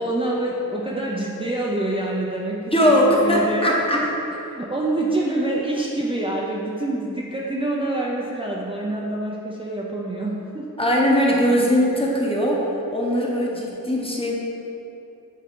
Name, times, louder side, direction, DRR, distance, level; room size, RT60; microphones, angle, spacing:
voice 1, 0.0-4.0 4.5-10.7, right 1 dB, 15° right, -4 dB, 0.5 m, -26 dB
voice 2, 2.7-4.0 10.8-14.3, equal, 15° left, -3 dB, 0.9 m, -20 dB
8.2 x 3.7 x 3.7 m, 2.9 s
wide cardioid pair, 90°, 36 cm